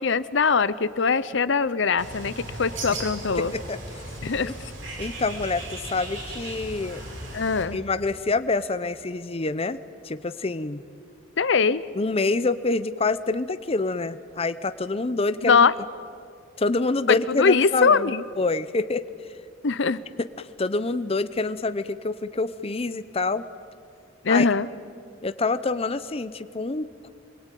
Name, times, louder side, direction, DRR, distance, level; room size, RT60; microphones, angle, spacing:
voice 1, 0.0-3.5 4.2-4.5 7.3-7.8 11.4-11.8 15.4-15.7 17.1-18.2 19.6-20.0 24.2-24.7, left 5 dB, 65° left, 16 dB, 0.7 m, -21 dB
Bird, 2.0-7.6, right 1 dB, 65° right, 5.8 m, -37 dB
voice 2, 3.4-3.8 4.4-4.5 5.0-7.0 7.7-9.8 10.0-10.8 11.9-15.6 16.6-19.0 20.2-23.4 24.3-24.5 25.2-27.1, left 3 dB, 30° left, 12 dB, 0.6 m, -27 dB
25.5 x 22.0 x 9.2 m, 2.3 s
head